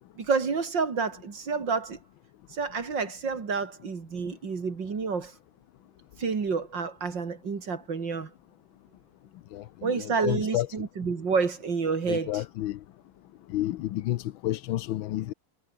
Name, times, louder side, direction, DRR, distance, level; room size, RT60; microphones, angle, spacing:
voice 1, 0.2-2.0 2.5-5.3 6.2-8.3 9.8-12.4, right 5 dB, 60° right, 3.3 m, -29 dB
voice 2, 9.5-10.7 12.1-12.8 13.5-15.3, left 14 dB, 80° left, 1.5 m, -30 dB
omnidirectional pair, 2.2 m